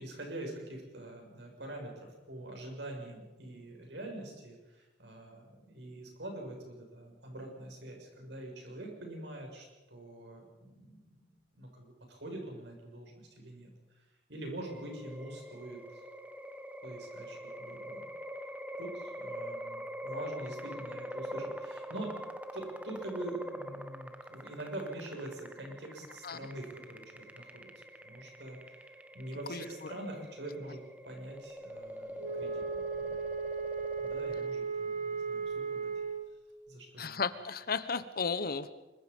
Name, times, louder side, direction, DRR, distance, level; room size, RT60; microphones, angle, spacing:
voice 1, 0.0-11.0 11.5-16.0 16.8-18.0 18.8-22.2 22.5-27.7 28.0-30.8 31.0-33.2 34.0-35.9 36.7-37.2, right 1 dB, 75° right, 2 dB, 6.9 m, -44 dB
sound 1, 14.6-34.5, equal, 10° right, 1.2 m, -44 dB
voice 2, 29.5-29.9 37.0-38.7, left 5 dB, 60° left, 13 dB, 1.2 m, -34 dB
Wind instrument woodwind instrument, 32.2-36.3, right 5 dB, 45° right, 1.7 m, -36 dB
25.5 x 23.5 x 5.5 m, 1.1 s
head